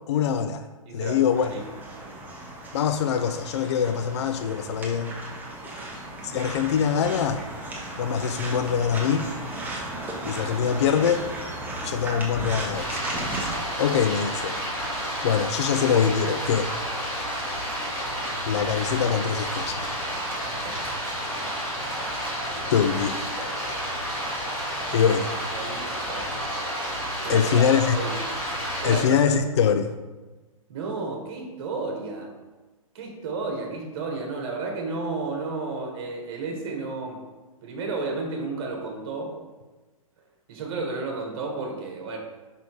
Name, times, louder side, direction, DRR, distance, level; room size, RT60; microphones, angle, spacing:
voice 1, 0.1-0.7 0.9-1.5 2.7-5.1 6.2-7.5 8.0-9.3 10.3-11.3 11.8-13.0 13.8-14.6 15.2-16.7 18.5-19.9 22.7-23.3 24.9-25.4 27.3-28.0 28.8-29.9, left 7 dB, 50° left, 10 dB, 0.4 m, -23 dB
voice 2, 0.8-1.2 1.5-1.6 2.0-2.2 5.7-5.9 20.6-20.8 25.5-26.3 27.2-28.2 28.8-29.2 30.7-32.3 32.9-37.2 37.6-39.4 40.5-42.2, right 3 dB, 45° right, 1 dB, 1.5 m, -32 dB
sound 1, 1.3-13.5, right 1 dB, 10° right, 1.2 m, -35 dB
Stream, 12.7-29.0, equal, 10° left, 1.8 m, -30 dB
5.6 x 4.1 x 4.7 m, 1.2 s
figure-of-eight pair, 115°, 18 cm